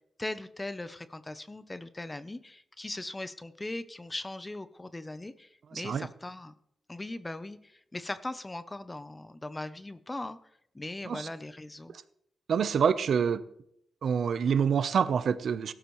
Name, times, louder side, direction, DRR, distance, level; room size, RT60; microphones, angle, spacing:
voice 1, 0.2-6.5 6.9-10.4 10.7-12.0, left 2 dB, 20° left, 12 dB, 0.7 m, -39 dB
voice 2, 5.7-6.1 11.0-11.3 12.5-13.4 14.0-15.7, right 7 dB, 70° right, 13 dB, 0.8 m, -26 dB
17.5 x 12.5 x 3.2 m, 0.73 s
cardioid pair, 95°, 0 cm